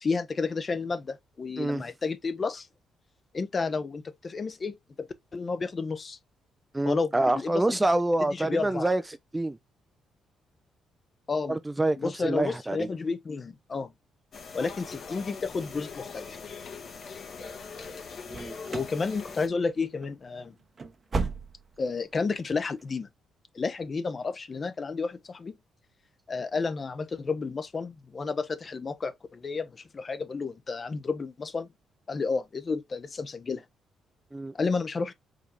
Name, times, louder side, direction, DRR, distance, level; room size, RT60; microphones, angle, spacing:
voice 1, 0.0-2.7 3.3-5.1 5.3-6.2 6.9-7.6 8.3-8.9 11.3-11.6 12.0-13.9 14.5-16.4 18.7-20.5 21.8-23.1 23.5-25.5 26.3-31.7 32.1-33.6 34.5-35.1, left 4 dB, 35° left, 0.8 m, -31 dB
voice 2, 6.7-9.0 9.3-9.6 11.5-12.9 18.3-18.6 34.3-34.5, right 2 dB, 15° right, 0.5 m, -26 dB
sound 1, 14.3-19.5, left 5 dB, 55° left, 1.4 m, -41 dB
sound 2, 18.3-19.0 19.3-19.7 20.0-20.2 20.6-21.9 22.2-22.3 22.8-22.9, right 4 dB, 35° right, 0.9 m, -34 dB
5.0 x 3.4 x 2.6 m
cardioid pair, 90°, 0 cm